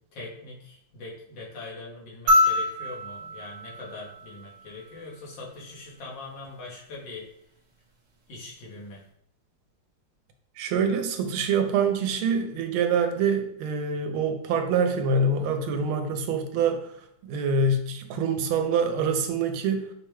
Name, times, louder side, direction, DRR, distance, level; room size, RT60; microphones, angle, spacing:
voice 1, 0.1-7.3 8.3-9.0, left 3 dB, 65° left, -3 dB, 1.6 m, -42 dB
sound 1, 2.3-4.8 6.4-6.5, left 2 dB, 60° right, 1.1 m, -25 dB
voice 2, 10.6-16.9 17.2-19.8, right 4 dB, 85° right, 7 dB, 1.4 m, -25 dB
5.0 x 2.1 x 3.1 m, 0.70 s
omnidirectional pair, 2.2 m